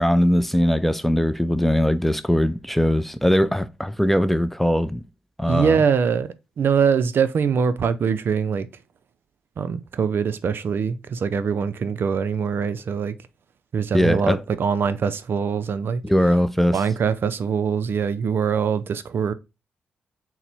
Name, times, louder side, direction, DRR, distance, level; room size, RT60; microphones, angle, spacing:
voice 1, 0.0-5.0 5.4-5.8 13.9-14.4 16.0-16.8, equal, 5° left, 0.4 m, -20 dB
voice 2, 5.5-8.7 9.6-13.1 13.7-16.0 16.7-19.3, right 6 dB, 60° right, 0.4 m, -23 dB
4.0 x 2.1 x 4.3 m
supercardioid pair, 50°, 4 cm